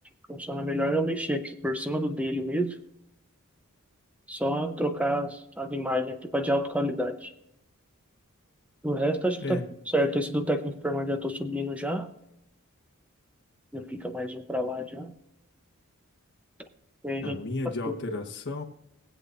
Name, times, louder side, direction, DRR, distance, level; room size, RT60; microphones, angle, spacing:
voice 1, 0.3-2.7 4.3-7.3 8.8-9.6 9.9-12.1 13.7-15.1 17.0-17.4 17.9-18.0, equal, 5° right, 7 dB, 0.7 m, -29 dB
voice 2, 9.4-9.7 17.2-18.6, left 2 dB, 55° left, 2 dB, 1.2 m, -33 dB
22.0 x 8.0 x 2.5 m, 0.85 s
head